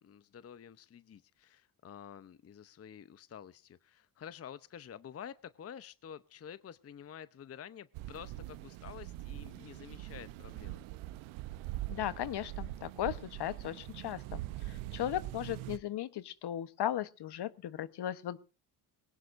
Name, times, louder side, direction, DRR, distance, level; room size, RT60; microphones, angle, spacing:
voice 1, 0.0-10.8, left 8 dB, 30° left, 14 dB, 0.7 m, -49 dB
sound 1, 7.9-15.8, right 16 dB, 80° right, 0.8 m, -43 dB
voice 2, 11.9-14.4 14.7-18.4, left 12 dB, 55° left, 14 dB, 1.0 m, -37 dB
20.0 x 17.5 x 2.6 m, 0.33 s
supercardioid pair, 70°, 48 cm